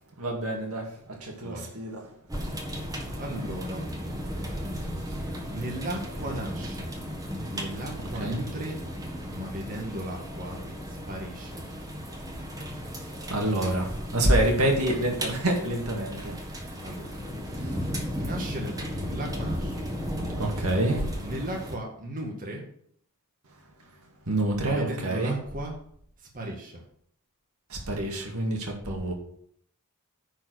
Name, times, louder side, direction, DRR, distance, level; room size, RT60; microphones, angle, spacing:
voice 1, 0.2-2.0 4.8-5.2 8.2-8.4 13.3-16.4 17.6-17.9 20.4-21.1 24.3-25.3 27.7-29.1, right 1 dB, 75° right, 2.1 m, -27 dB
sound 1, 2.3-21.8, equal, 15° right, 1.6 m, -35 dB
voice 2, 3.2-3.9 5.5-6.9 7.5-8.8 9.3-11.7 16.8-17.2 18.1-19.7 21.2-22.6 24.6-25.8 26.2-26.8, right 1 dB, 40° right, 1.9 m, -36 dB
10.5 x 4.6 x 6.4 m
head